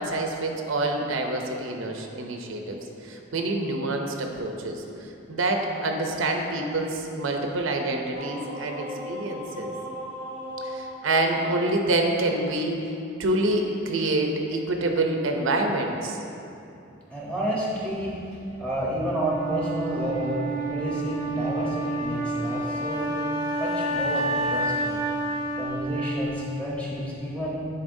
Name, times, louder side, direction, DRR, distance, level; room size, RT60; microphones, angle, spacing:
voice 1, 0.0-2.8 3.0-4.8 5.3-9.7 10.6-12.8 13.2-16.2, right 2 dB, 75° right, 3 dB, 0.6 m, -26 dB
sound 1, 8.1-12.4, equal, 60° left, 1.4 m, -38 dB
voice 2, 17.1-18.2 18.6-23.1 23.6-25.0 25.6-27.7, equal, 5° left, -6 dB, 1.0 m, -30 dB
Wind instrument woodwind instrument, 19.0-27.0, right 2 dB, 85° left, 1.3 m, -29 dB
9.7 x 3.9 x 2.6 m, 2.7 s
head